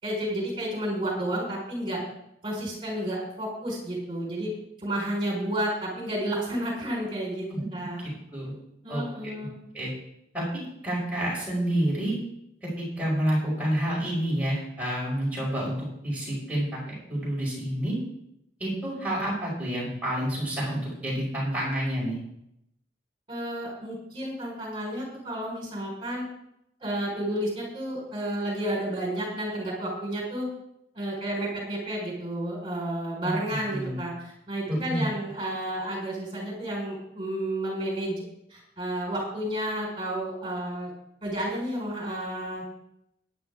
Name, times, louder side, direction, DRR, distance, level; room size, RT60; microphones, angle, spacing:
voice 1, 0.0-2.0 2.4-4.5 4.8-8.1 8.8-9.6 23.3-26.3 26.8-30.5 30.9-38.2 38.5-40.9 41.2-42.6, right 1 dB, 25° right, -2 dB, 4.6 m, -31 dB
voice 2, 7.5-7.8 8.3-8.5 8.9-9.0 9.7-9.9 10.3-12.2 12.6-18.0 18.6-22.2 33.2-34.0 34.7-35.1, right 1 dB, 10° right, -6 dB, 5.6 m, -29 dB
14.0 x 10.5 x 3.7 m, 0.79 s
head